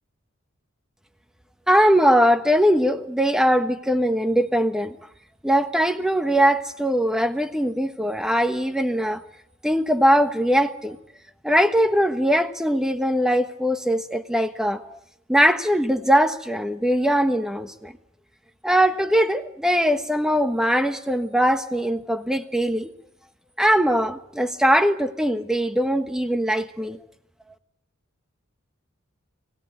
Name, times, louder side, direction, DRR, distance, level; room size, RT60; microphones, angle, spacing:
voice 1, 1.7-5.0 5.4-9.2 9.6-11.0 11.4-15.0 15.3-17.9 18.6-22.9 23.6-27.0, equal, 5° right, 8 dB, 1.3 m, -21 dB
26.0 x 17.5 x 9.2 m, 0.76 s
head